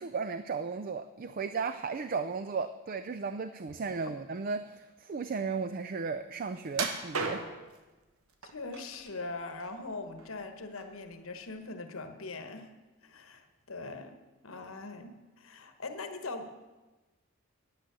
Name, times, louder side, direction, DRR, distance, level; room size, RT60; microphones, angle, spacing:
voice 1, 0.0-7.4, right 5 dB, 40° right, 11 dB, 0.4 m, -35 dB
sound 1, 6.7-7.8 8.4-9.1 9.5-10.4 10.8-11.0 11.5-11.6, right 4 dB, 90° right, 1.3 m, -35 dB
voice 2, 8.5-12.7 13.0-14.2 14.4-16.5, left 3 dB, 75° left, 7 dB, 1.1 m, -41 dB
9.7 x 9.0 x 6.8 m, 1.2 s
head